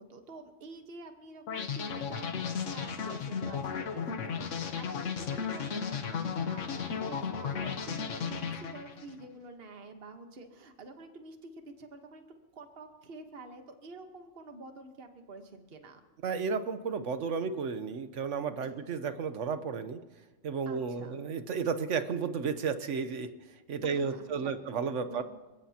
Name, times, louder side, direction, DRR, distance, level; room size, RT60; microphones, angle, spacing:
voice 1, 0.0-12.2 12.5-16.0 20.7-21.2 23.8-24.6 25.1-25.2, right 3 dB, 50° right, 6 dB, 1.4 m, -48 dB
sound 1, 1.5-9.1, left 6 dB, 75° left, 1.3 m, -35 dB
voice 2, 16.2-20.0 20.4-23.3 23.7-25.2, right 5 dB, 70° right, 10 dB, 1.2 m, -33 dB
27.5 x 16.5 x 2.9 m, 1.2 s
omnidirectional pair, 1.3 m